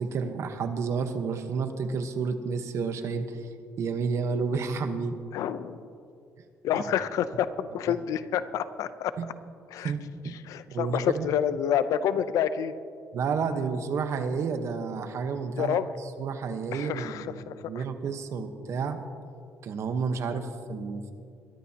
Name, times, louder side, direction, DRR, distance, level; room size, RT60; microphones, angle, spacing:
voice 1, 0.0-3.5 3.8-5.1 6.7-6.8 7.9-8.0 9.2-9.3 9.8-10.3 10.7-11.3 13.1-19.0 19.6-21.1, right 5 dB, 55° right, 8 dB, 1.1 m, -31 dB
voice 2, 5.3-5.8 6.6-9.1 9.7-9.9 10.5-12.7 15.6-15.9 16.7-17.8 20.3-20.5, left 9 dB, 75° left, 13 dB, 0.6 m, -28 dB
22.5 x 13.5 x 2.9 m, 2.4 s
cardioid pair, 120°, 6 cm